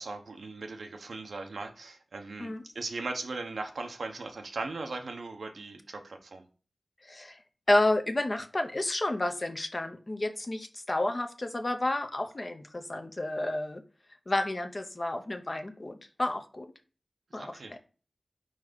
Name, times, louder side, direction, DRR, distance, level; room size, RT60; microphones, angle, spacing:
voice 1, 0.0-6.4 17.4-17.8, right 3 dB, 85° right, 4 dB, 0.9 m, -38 dB
voice 2, 7.0-7.4 7.7-13.8 14.3-16.7 17.3-17.6, left 1 dB, 35° left, 7 dB, 0.7 m, -30 dB
4.7 x 4.0 x 5.1 m, 0.37 s
wide cardioid pair, 90°, 0 cm